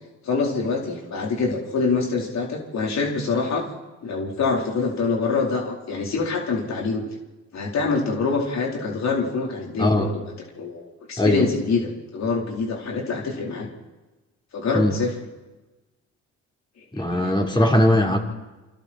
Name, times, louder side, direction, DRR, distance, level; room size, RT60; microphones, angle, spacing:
voice 1, 0.2-3.7 4.0-7.0 7.5-10.2 10.6-13.7 14.5-15.1 17.1-17.8, left 4 dB, 60° left, -1 dB, 4.2 m, -25 dB
voice 2, 11.2-11.5 14.7-14.9 16.9-18.2, left 1 dB, 15° left, 1 dB, 4.2 m, -19 dB
27.5 x 26.0 x 4.5 m, 1.1 s
cardioid pair, 90°, 30 cm